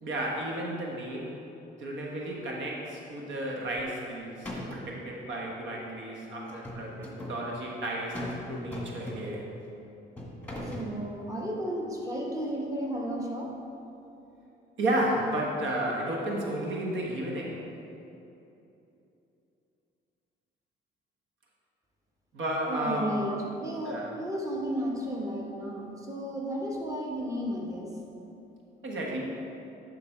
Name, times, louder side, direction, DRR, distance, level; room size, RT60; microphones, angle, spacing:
voice 1, 0.0-1.4 1.8-9.5 14.8-17.6 22.3-23.2 23.8-24.1 28.8-29.2, right 1 dB, 70° right, -2 dB, 1.3 m, -32 dB
sound 1, 3.8-4.1 4.4-5.0 6.5-7.4 8.1-8.4 8.7-9.5 10.2-10.9, left 1 dB, 5° left, 1.6 m, -38 dB
voice 2, 10.7-13.5 22.7-27.9 29.1-29.2, equal, 15° right, -2 dB, 1.3 m, -33 dB
10.5 x 3.9 x 4.6 m, 2.9 s
cardioid pair, 90°, 20 cm